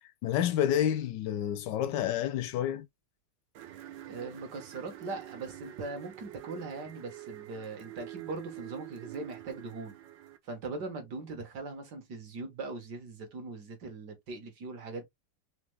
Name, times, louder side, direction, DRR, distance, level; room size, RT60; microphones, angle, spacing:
voice 1, 0.2-2.9, left 10 dB, 75° left, 1.3 m, -29 dB
sound 1, 3.5-10.4, right 14 dB, 85° right, 1.5 m, -46 dB
voice 2, 4.0-9.9 10.4-15.0, right 3 dB, 65° right, 2.0 m, -40 dB
5.0 x 2.5 x 3.3 m
omnidirectional pair, 1.9 m